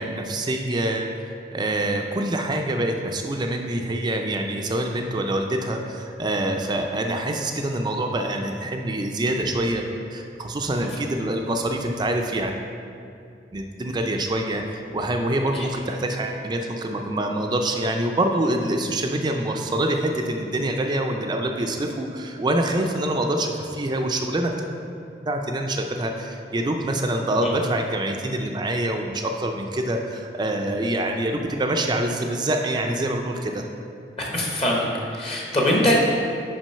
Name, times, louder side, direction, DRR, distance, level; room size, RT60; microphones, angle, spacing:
voice 1, 0.0-9.8 10.1-12.6 13.5-24.5 25.3-33.6, right 1 dB, 25° right, 3 dB, 0.4 m, -25 dB
voice 2, 34.2-34.9 35.1-35.9, left 1 dB, 35° left, -3 dB, 1.0 m, -22 dB
6.0 x 4.8 x 5.6 m, 2.5 s
head